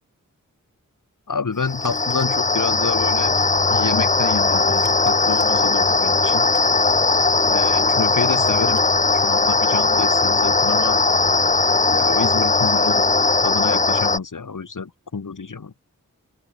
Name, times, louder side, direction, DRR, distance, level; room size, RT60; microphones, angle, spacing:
voice 1, 1.3-3.3 3.7-6.5 7.5-8.9 9.2-11.0 11.9-13.1 13.4-15.7, left 5 dB, 70° left, 2.5 m, -28 dB
sound 1, 1.6-14.2, left 3 dB, 25° left, 0.6 m, -19 dB
sound 2, 1.7-2.3 3.2-3.5 3.7-4.0 4.7-5.5 6.5-6.9 8.4-8.9, right 4 dB, 75° right, 4.6 m, -44 dB
open air
wide cardioid pair, 85°, 33 cm